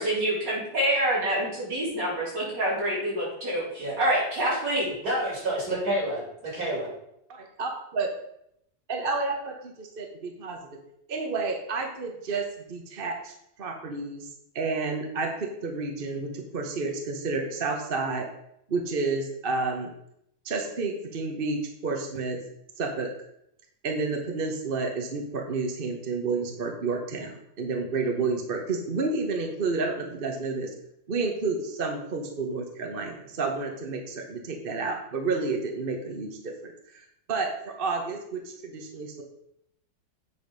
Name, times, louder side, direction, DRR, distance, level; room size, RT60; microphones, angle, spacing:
voice 1, 0.0-4.9, right 1 dB, 75° right, -6 dB, 4.2 m, -27 dB
voice 2, 5.0-6.9, right 1 dB, 55° right, -3 dB, 3.4 m, -29 dB
voice 3, 7.3-8.1 8.9-10.6 11.1-13.3 13.6-14.3 14.5-18.3 18.7-19.9 20.4-22.4 22.8-23.1 23.8-30.7 31.1-39.2, right 3 dB, 35° right, 2 dB, 1.0 m, -30 dB
8.1 x 5.1 x 5.2 m, 0.76 s
omnidirectional pair, 1.9 m